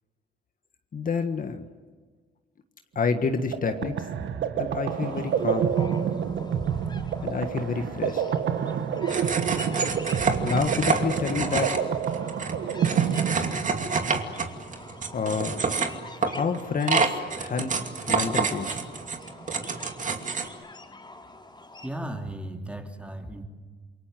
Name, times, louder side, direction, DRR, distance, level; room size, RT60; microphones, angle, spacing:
voice 1, 0.9-1.6 2.9-4.1 4.6-5.7 7.2-8.2 10.4-11.8 15.1-15.6 16.2-17.7 18.1-18.8, left 5 dB, 45° left, 7 dB, 1.7 m, -28 dB
sound 1, 3.2-14.1, right 8 dB, 70° right, 1.7 m, -28 dB
sound 2, 4.9-21.9, left 2 dB, 20° left, 3.9 m, -45 dB
sound 3, 9.1-20.5, right 4 dB, 40° right, 2.6 m, -28 dB
voice 2, 21.8-23.4, right 1 dB, 5° right, 3 dB, 3.4 m, -35 dB
27.5 x 23.0 x 7.7 m, 1.4 s
cardioid pair, 90°, 20 cm